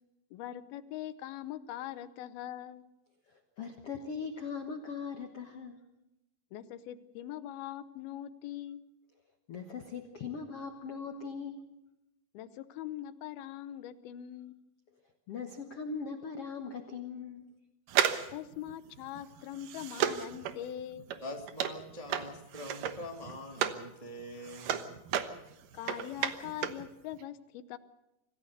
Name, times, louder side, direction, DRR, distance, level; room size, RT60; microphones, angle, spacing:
voice 1, 0.3-2.8 6.5-8.8 12.3-14.5 18.3-21.1 25.7-27.8, left 12 dB, 80° left, 13 dB, 2.8 m, -42 dB
voice 2, 3.3-5.8 9.5-11.6 15.3-17.5, left 5 dB, 60° left, 5 dB, 1.6 m, -40 dB
sound 1, 17.9-23.9 24.2-26.9 27.1-27.2, right 9 dB, 70° right, 2.6 m, -34 dB
voice 3, 21.2-25.0, left 1 dB, 15° right, 2 dB, 1.5 m, -44 dB
25.5 x 15.5 x 6.7 m, 0.93 s
omnidirectional pair, 4.3 m